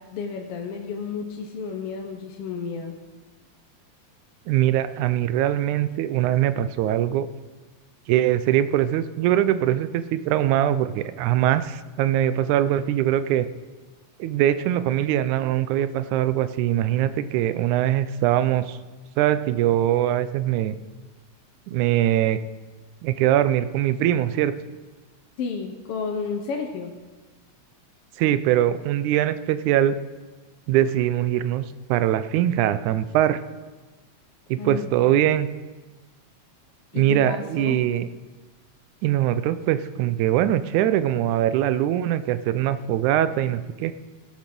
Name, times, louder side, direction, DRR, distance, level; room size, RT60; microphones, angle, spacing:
voice 1, 0.1-3.0 25.4-26.9 34.6-35.2 36.9-37.9, left 5 dB, 65° left, 3 dB, 1.6 m, -32 dB
voice 2, 4.5-7.3 8.1-13.5 14.2-18.8 19.2-20.8 21.7-22.4 23.0-24.5 28.2-30.0 30.7-33.4 34.5-35.5 36.9-38.1 39.0-43.9, right 12 dB, 90° right, 13 dB, 2.1 m, -22 dB
16.5 x 8.9 x 6.0 m, 1.3 s
omnidirectional pair, 3.4 m